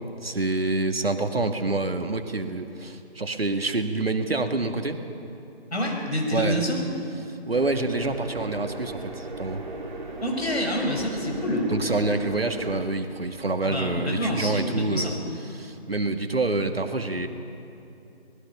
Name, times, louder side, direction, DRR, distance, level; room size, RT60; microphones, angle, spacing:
voice 1, 0.2-5.0 6.3-6.6 7.5-9.6 11.7-15.2 15.5-17.3, right 2 dB, 65° right, 6 dB, 1.9 m, -27 dB
voice 2, 5.7-6.8 10.2-11.7 13.6-15.1, equal, 85° left, 1 dB, 5.9 m, -27 dB
sound 1, 7.5-12.8, right 2 dB, 45° right, 2.7 m, -37 dB
25.5 x 19.5 x 5.7 m, 2.8 s
figure-of-eight pair, 160°, 32 cm